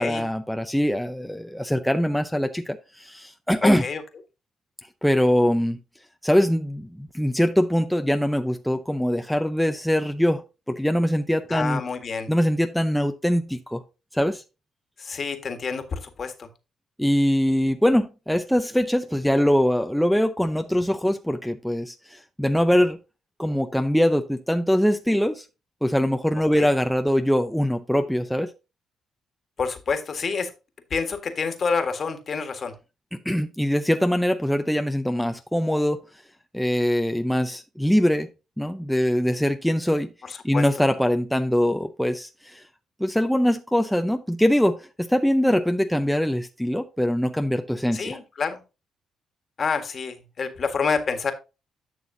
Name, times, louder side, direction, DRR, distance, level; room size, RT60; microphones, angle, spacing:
voice 1, 0.0-3.8 5.0-5.8 6.2-10.4 10.7-11.8 12.3-13.8 14.1-14.4 17.0-23.0 23.4-25.5 25.8-28.5 33.3-36.0 36.5-38.3 38.6-40.1 40.4-42.6 43.0-48.2, equal, ahead, 0.6 m, -22 dB
voice 2, 3.6-4.0 11.5-12.3 15.0-16.5 26.5-26.7 29.6-30.5 30.9-32.7 40.2-40.6 47.9-48.6 49.6-51.3, left 5 dB, 45° left, 1.6 m, -28 dB
11.0 x 6.2 x 2.7 m
cardioid pair, 90°, 0 cm